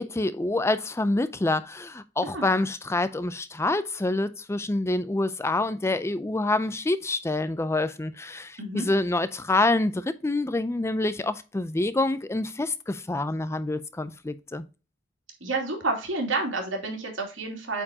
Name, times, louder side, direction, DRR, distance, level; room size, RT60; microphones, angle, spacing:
voice 1, 0.0-14.6, left 2 dB, 15° left, 0.4 m, -27 dB
voice 2, 2.2-2.5 8.6-8.9 15.4-17.8, right 3 dB, 85° right, 2.7 m, -30 dB
8.6 x 4.5 x 2.8 m
head